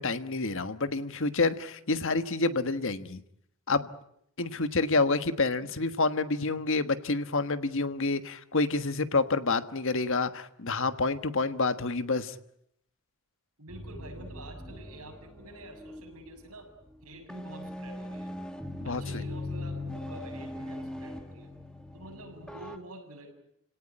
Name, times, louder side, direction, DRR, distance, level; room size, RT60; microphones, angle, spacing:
voice 1, 0.0-3.2 3.7-3.9 4.4-12.3 18.9-19.2, left 3 dB, 60° left, 11 dB, 1.4 m, -28 dB
voice 2, 5.0-5.9 13.6-16.7 17.0-18.3 18.8-21.5 21.9-23.3, right 1 dB, 80° right, 2 dB, 7.5 m, -48 dB
sound 1, 13.7-16.5 16.9-17.0 17.3-22.8, left 1 dB, 5° left, 2.1 m, -40 dB
29.5 x 18.0 x 10.0 m, 0.74 s
head